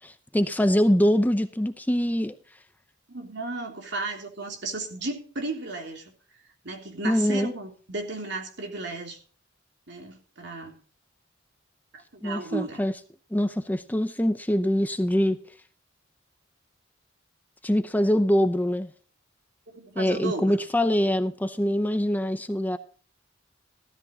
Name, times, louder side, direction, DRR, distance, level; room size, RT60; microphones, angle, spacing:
voice 1, 0.0-2.4 7.0-7.5 12.2-12.9 13.3-15.4 17.6-18.9 20.0-22.8, equal, 10° left, 10 dB, 0.6 m, -24 dB
voice 2, 3.1-6.1 6.6-9.2 9.9-10.8 11.9-12.8 19.7-20.6, right 3 dB, 60° right, 3 dB, 3.2 m, -34 dB
15.0 x 13.5 x 2.8 m, 0.41 s
head